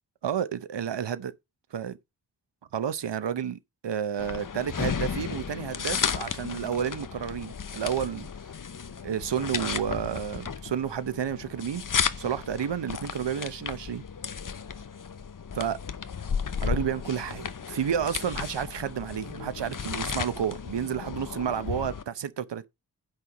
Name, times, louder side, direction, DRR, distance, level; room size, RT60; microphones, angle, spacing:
voice 1, 0.2-1.3 1.7-2.0 2.7-8.3 9.0-11.8 12.2-14.0 15.6-15.8 16.6-22.7, right 8 dB, 85° right, 0.8 m, -31 dB
sound 1, 4.2-22.0, left 6 dB, 50° left, 0.8 m, -34 dB
8.9 x 5.5 x 5.4 m
wide cardioid pair, 75°, 41 cm